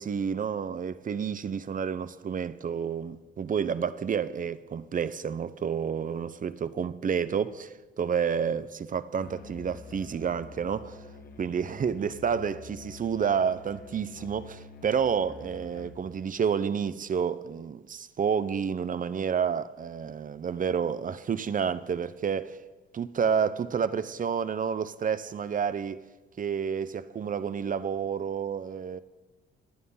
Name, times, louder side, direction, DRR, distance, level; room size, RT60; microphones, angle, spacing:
voice 1, 0.0-11.0 11.4-14.4 14.8-22.6 22.9-26.0 26.4-29.0, right 7 dB, 45° right, 0.8 m, -30 dB
Musical instrument, 9.2-16.1, left 5 dB, 45° left, 1.9 m, -48 dB
27.0 x 9.3 x 5.7 m
cardioid pair, 90°, 20 cm